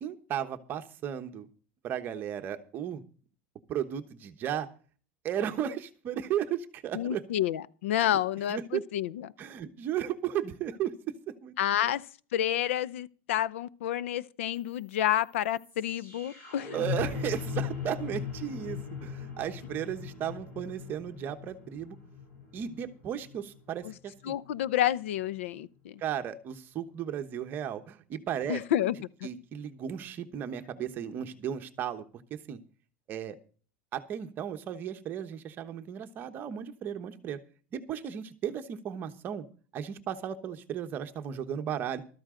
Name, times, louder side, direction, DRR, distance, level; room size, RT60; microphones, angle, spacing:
voice 1, 0.0-1.5 1.8-3.0 3.7-4.7 5.2-7.2 8.0-8.1 8.5-8.8 9.4-10.9 11.4-11.5 16.7-22.0 22.5-24.4 26.0-28.6 29.2-32.0 32.3-32.6 33.1-33.4 33.9-37.4 37.7-39.4 39.7-42.0, right 9 dB, 30° right, 1.1 m, -35 dB
voice 2, 6.9-9.3 11.6-12.0 12.3-16.7 23.8-23.9 24.2-26.0 28.5-29.0, left 11 dB, 85° left, 0.7 m, -29 dB
sound 1, 14.6-24.6, left 6 dB, 35° left, 7.3 m, -39 dB
13.5 x 13.0 x 3.8 m
supercardioid pair, 155°, 7 cm